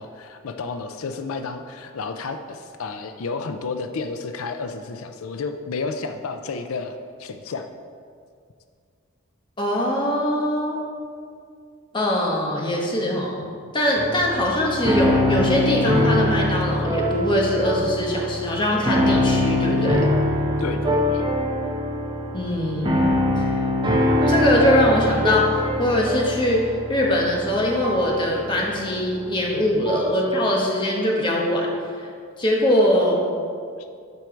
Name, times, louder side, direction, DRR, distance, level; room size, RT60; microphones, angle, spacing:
voice 1, 0.0-7.7 20.6-21.2, left 4 dB, 90° left, 8 dB, 0.5 m, -31 dB
voice 2, 9.6-10.8 11.9-13.5 13.7-20.1 22.3-23.0 23.4-23.5 24.3-25.5 25.8-31.7 32.0-32.1 32.4-33.2, left 1 dB, 20° left, -2 dB, 1.2 m, -22 dB
sound 1, 14.0-30.2, left 1 dB, 20° right, 1.0 m, -23 dB
12.0 x 4.6 x 4.5 m, 2.2 s
head